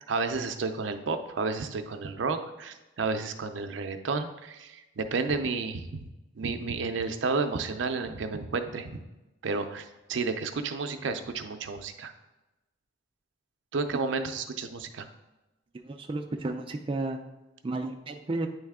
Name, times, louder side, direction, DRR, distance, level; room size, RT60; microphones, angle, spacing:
voice 1, 0.0-6.1 6.4-8.9 9.4-12.1 13.7-15.1, right 4 dB, 80° right, 7 dB, 0.5 m, -31 dB
voice 2, 15.8-17.2 17.6-18.5, right 2 dB, 30° right, 4 dB, 0.3 m, -32 dB
9.1 x 3.2 x 3.5 m, 1.0 s
head